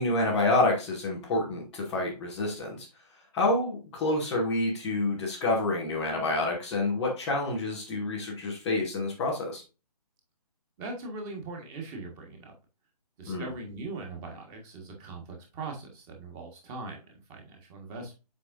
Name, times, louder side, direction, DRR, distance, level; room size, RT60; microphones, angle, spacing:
voice 1, 0.0-2.9 3.3-9.6 13.3-13.5, left 2 dB, ahead, -10 dB, 0.3 m, -28 dB
voice 2, 10.8-12.5 13.2-18.1, right 3 dB, 15° right, 2 dB, 1.5 m, -40 dB
8.0 x 5.1 x 2.6 m, 0.30 s
figure-of-eight pair, 140°, 21 cm